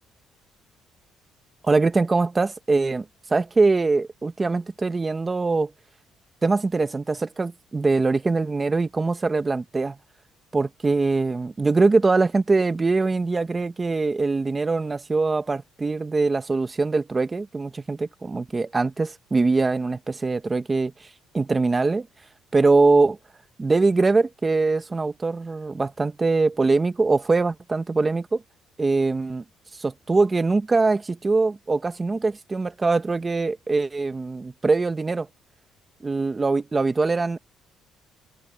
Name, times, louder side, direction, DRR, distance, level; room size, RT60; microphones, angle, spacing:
voice 1, 1.6-3.0 3.3-5.7 6.4-10.0 10.5-20.9 21.3-22.1 22.5-23.2 23.6-28.4 28.8-29.4 29.8-35.3 36.0-37.4, right 3 dB, 20° right, 1.1 m, -22 dB
open air
cardioid pair, 140°, 0 cm